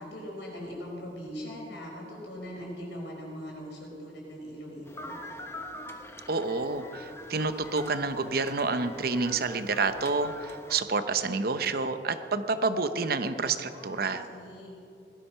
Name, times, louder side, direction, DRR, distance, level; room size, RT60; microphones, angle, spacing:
voice 1, 0.0-5.1 13.6-14.7, equal, 75° left, -1 dB, 4.6 m, -41 dB
sound 1, 4.9-10.8, left 1 dB, 15° left, 1.1 m, -44 dB
voice 2, 6.3-14.2, right 4 dB, 60° right, 10 dB, 0.8 m, -29 dB
18.0 x 12.0 x 5.7 m, 2.6 s
head